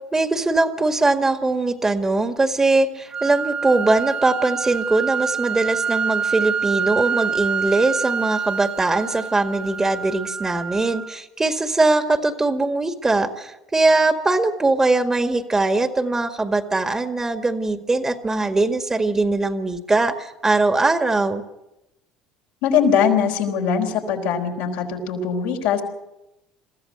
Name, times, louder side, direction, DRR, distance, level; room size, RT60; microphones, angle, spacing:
voice 1, 0.1-21.4, right 2 dB, 20° right, 7 dB, 1.9 m, -21 dB
sound 1, 3.1-11.1, right 6 dB, 35° right, 0.7 m, -26 dB
voice 2, 22.6-25.8, left 7 dB, 80° left, 1 dB, 3.8 m, -21 dB
22.5 x 14.5 x 8.0 m, 0.93 s
hypercardioid pair, 75°, 2 cm